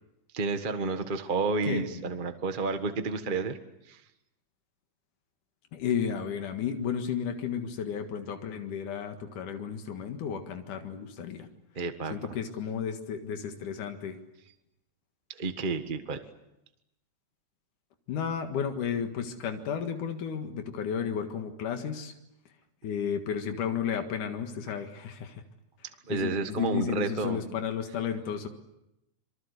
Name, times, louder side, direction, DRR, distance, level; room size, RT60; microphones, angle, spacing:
voice 1, 0.3-3.6 3.9-4.0 11.7-12.4 15.3-16.2 26.1-27.5, right 4 dB, 45° right, 7 dB, 0.6 m, -31 dB
voice 2, 1.6-2.0 5.7-11.5 12.1-14.2 18.1-22.1 22.8-25.4 26.1-28.5, left 7 dB, 85° left, 6 dB, 3.3 m, -33 dB
27.0 x 23.5 x 8.3 m, 0.88 s
omnidirectional pair, 3.5 m